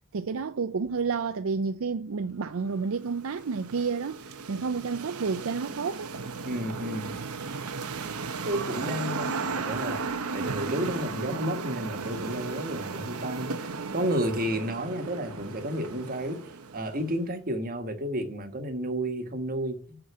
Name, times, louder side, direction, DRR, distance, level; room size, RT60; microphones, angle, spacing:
voice 1, 0.1-6.1, right 5 dB, 65° right, 0.5 m, -30 dB
sound 1, 2.6-17.2, right 4 dB, 80° right, 0.9 m, -35 dB
voice 2, 6.4-7.2 8.4-10.0 10.3-16.4 16.7-20.0, right 1 dB, 40° right, 1.5 m, -31 dB
6.8 x 6.0 x 7.4 m
head